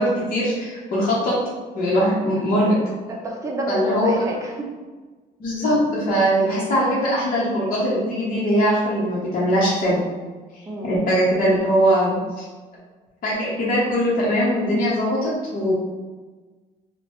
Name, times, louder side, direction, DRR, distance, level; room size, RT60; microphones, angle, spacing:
voice 1, 0.0-1.3 1.7-2.8 3.7-4.1 5.4-10.0 10.8-12.4 13.2-15.7, equal, 55° left, -7 dB, 0.8 m, -21 dB
voice 2, 3.1-4.7 10.7-10.9, right 1 dB, 20° right, -1 dB, 0.5 m, -29 dB
2.9 x 2.1 x 2.9 m, 1.3 s
cardioid pair, 110°, 17 cm